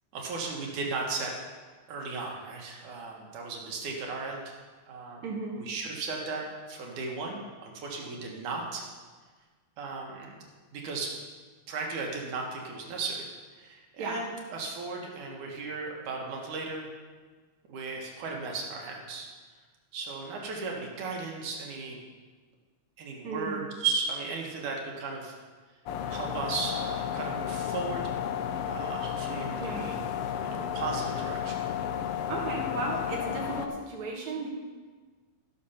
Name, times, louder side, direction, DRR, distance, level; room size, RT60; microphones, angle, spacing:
voice 1, 0.1-1.3 1.9-4.5 4.9-5.2 5.5-8.8 9.8-10.3 10.7-11.1 11.7-13.3 13.5-16.9 17.7-19.3 19.9-22.0 23.0-25.3 26.1-28.1 28.7-30.0 30.4-31.6, right 4 dB, 90° right, -1 dB, 3.1 m, -35 dB
voice 2, 5.2-5.6 14.0-14.2 23.2-23.6 29.5-29.8 32.3-34.5, right 3 dB, 70° right, -1 dB, 2.8 m, -35 dB
sound 1, 25.9-33.7, left 9 dB, 80° left, 1.4 m, -33 dB
14.5 x 6.6 x 5.7 m, 1.4 s
omnidirectional pair, 3.4 m